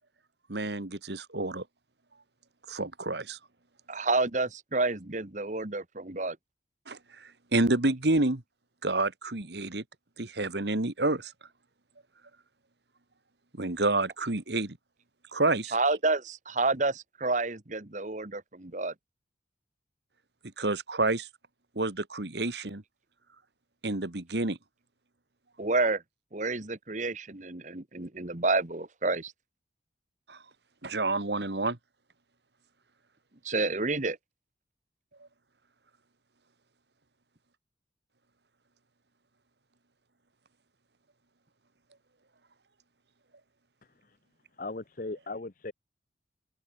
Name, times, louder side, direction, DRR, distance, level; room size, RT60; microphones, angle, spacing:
voice 1, 0.5-1.6 2.7-3.4 6.9-8.4 8.8-9.8 10.2-11.3 13.6-14.8 15.3-15.8 20.6-21.3 21.8-22.8 23.8-24.6 30.3-30.4 30.8-31.8, right 2 dB, 70° right, 1.9 m, -29 dB
voice 2, 3.9-6.4 15.7-18.9 25.6-26.0 26.3-29.3 33.4-34.2, right 3 dB, 40° right, 1.6 m, -29 dB
voice 3, 44.6-45.7, left 2 dB, 50° left, 0.9 m, -37 dB
head